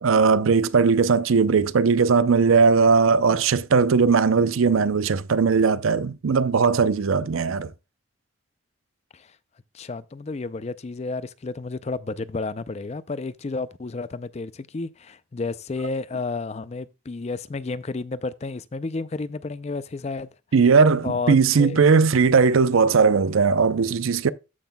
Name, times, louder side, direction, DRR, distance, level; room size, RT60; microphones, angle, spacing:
voice 1, 0.0-7.7 20.5-24.3, right 5 dB, 85° right, 0.5 m, -19 dB
voice 2, 9.7-20.3 21.0-21.8, left 3 dB, 30° left, 0.4 m, -31 dB
14.0 x 5.8 x 2.2 m
head